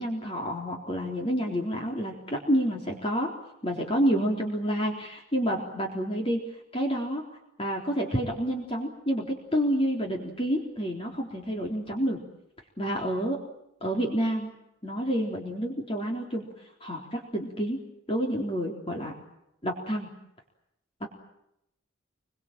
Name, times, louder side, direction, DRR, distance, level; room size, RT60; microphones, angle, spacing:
voice 1, 0.0-3.3 3.6-6.4 6.7-7.2 7.6-12.2 12.8-13.4 13.8-14.5 14.8-16.5 16.8-17.8 18.1-19.1 19.6-20.1 21.0-21.1, equal, 25° left, 0 dB, 3.9 m, -29 dB
29.0 x 23.5 x 7.7 m, 0.82 s
head